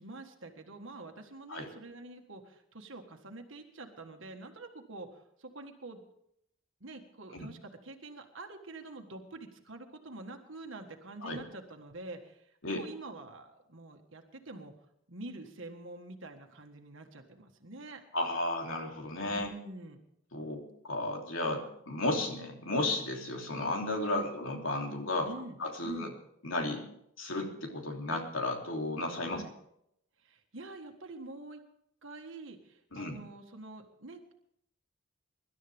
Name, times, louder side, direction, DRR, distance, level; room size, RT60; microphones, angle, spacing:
voice 1, 0.0-6.0 6.8-14.8 15.1-18.0 19.3-20.0 24.0-24.3 25.2-26.2 29.2-29.5 30.2-31.6 32.0-34.3, right 2 dB, 65° right, 3 dB, 1.6 m, -46 dB
voice 2, 18.1-19.5 20.3-25.3 25.6-26.1 26.4-26.8 27.2-29.4 32.9-33.2, left 2 dB, 70° left, 2 dB, 3.2 m, -33 dB
24.5 x 12.5 x 3.6 m, 0.73 s
head